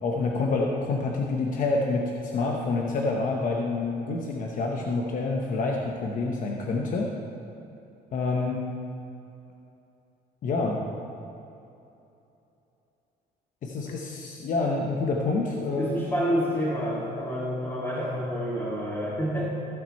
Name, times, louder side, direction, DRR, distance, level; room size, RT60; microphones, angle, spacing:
voice 1, 0.0-7.1 8.1-8.7 10.4-10.8 13.6-15.9, left 3 dB, 50° left, 0 dB, 1.0 m, -27 dB
voice 2, 15.8-19.5, equal, 15° left, -10 dB, 2.3 m, -28 dB
15.5 x 5.9 x 4.2 m, 2.8 s
cardioid pair, 110°, 17 cm